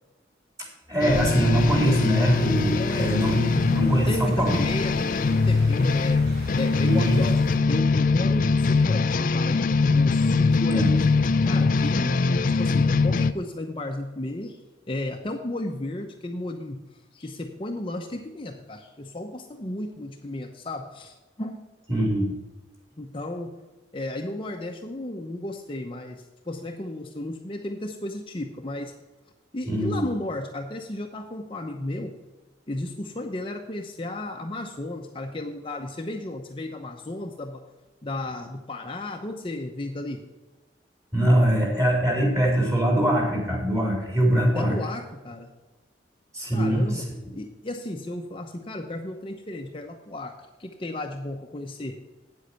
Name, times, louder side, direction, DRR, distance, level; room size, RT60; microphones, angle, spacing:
voice 1, 0.9-4.7 6.8-7.2 10.7-10.9 21.9-22.3 29.7-30.1 41.1-44.8 46.3-47.0, right 1 dB, 20° right, -2 dB, 3.7 m, -22 dB
sound 1, 1.0-13.3, left 4 dB, 50° left, 0.4 m, -22 dB
sound 2, 1.1-7.6, equal, 75° right, 3.8 m, -38 dB
voice 2, 2.8-3.3 3.9-6.2 6.6-7.4 7.7-9.6 9.9-11.0 11.4-12.3 12.6-14.6 14.9-16.8 17.1-21.6 23.0-23.6 23.9-28.9 29.5-32.2 32.7-37.6 38.0-40.2 44.5-45.5 46.5-47.1 47.3-51.9, left 1 dB, 30° left, 3 dB, 0.8 m, -34 dB
9.2 x 8.1 x 5.7 m, 1.2 s
head